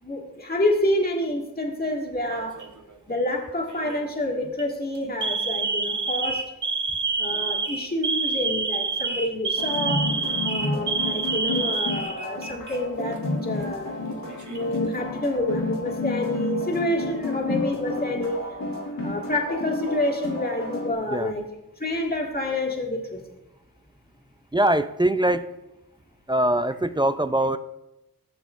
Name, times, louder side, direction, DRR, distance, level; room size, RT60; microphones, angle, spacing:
voice 1, 0.0-2.6 3.1-6.4 7.2-10.2 10.4-13.9 14.5-18.4 19.0-21.4 21.8-23.2, left 1 dB, 25° left, -1 dB, 1.9 m, -28 dB
Alarm, 2.3-2.8 3.7-4.0 4.4-4.6 5.2-12.8 13.1-13.2 14.1-14.8, right 4 dB, 55° right, 1.1 m, -28 dB
sound 1, 9.6-20.9, left 2 dB, 65° left, 1.8 m, -31 dB
voice 2, 24.5-25.5 26.3-27.6, right 1 dB, 15° right, 11 dB, 0.4 m, -22 dB
15.0 x 7.1 x 2.5 m, 0.94 s
cardioid pair, 45°, 36 cm